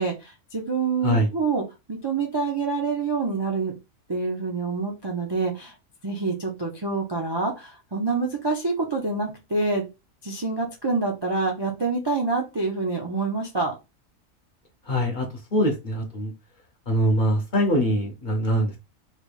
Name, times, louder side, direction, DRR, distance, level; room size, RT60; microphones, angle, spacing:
voice 1, 0.0-1.6 1.9-3.7 4.1-5.7 6.0-9.8 10.2-13.7, right 4 dB, 35° right, 1 dB, 0.4 m, -26 dB
voice 2, 14.9-16.3 16.9-18.8, equal, 45° left, 1 dB, 0.8 m, -23 dB
3.3 x 3.2 x 2.5 m, 0.26 s
omnidirectional pair, 1.4 m